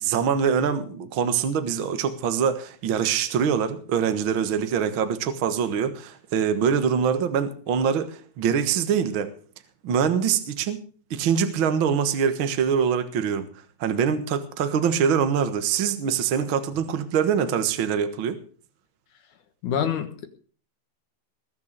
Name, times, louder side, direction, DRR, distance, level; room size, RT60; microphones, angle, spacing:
voice 1, 0.0-9.3 9.8-10.8 11.1-13.4 13.8-18.4, right 7 dB, 55° right, 1.5 m, -24 dB
voice 2, 19.6-20.3, left 8 dB, 65° left, 2.8 m, -26 dB
20.5 x 7.0 x 6.7 m
omnidirectional pair, 3.9 m